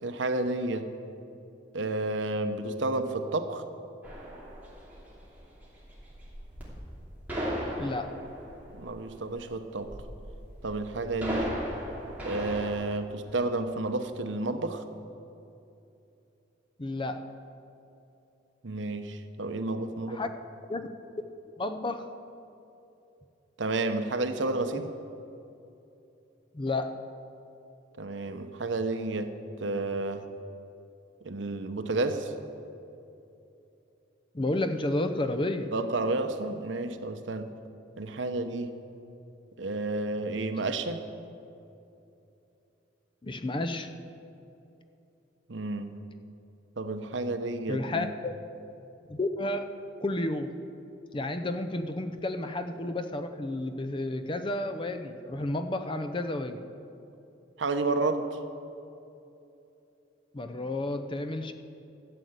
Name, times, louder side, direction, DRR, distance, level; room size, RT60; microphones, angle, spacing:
voice 1, 0.0-0.9 1.7-3.6 8.7-9.9 10.6-11.6 12.2-14.8 18.6-20.2 23.6-24.9 28.0-30.3 31.2-32.3 35.7-37.6 38.0-38.8 39.6-41.0 45.5-46.0 46.8-48.1 57.6-58.4, right 2 dB, 80° right, 8 dB, 0.9 m, -31 dB
sound 1, 4.0-12.7, equal, 10° right, 2.9 m, -37 dB
voice 2, 7.8-8.1 16.8-17.3 20.1-20.3 20.7-20.9 21.6-22.1 26.5-27.0 34.3-35.7 43.2-43.9 47.7-48.3 49.1-49.7 50.0-50.5 51.1-56.6 60.3-61.5, left 2 dB, 25° left, 8 dB, 0.6 m, -31 dB
13.5 x 7.8 x 8.1 m, 2.8 s
head